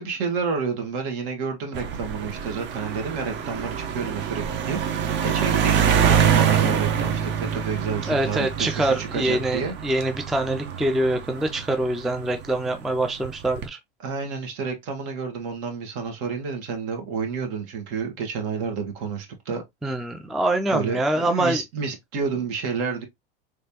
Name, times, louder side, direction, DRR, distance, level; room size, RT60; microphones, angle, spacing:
voice 1, 0.0-9.7 14.0-19.6 20.7-23.0, right 5 dB, 55° right, 1.7 m, -30 dB
sound 1, 1.7-12.5 13.2-13.7, right 7 dB, 40° right, 0.8 m, -25 dB
voice 2, 8.1-13.8 19.8-21.6, right 1 dB, ahead, 0.3 m, -24 dB
3.3 x 3.3 x 2.8 m
hypercardioid pair, 100°, 30 cm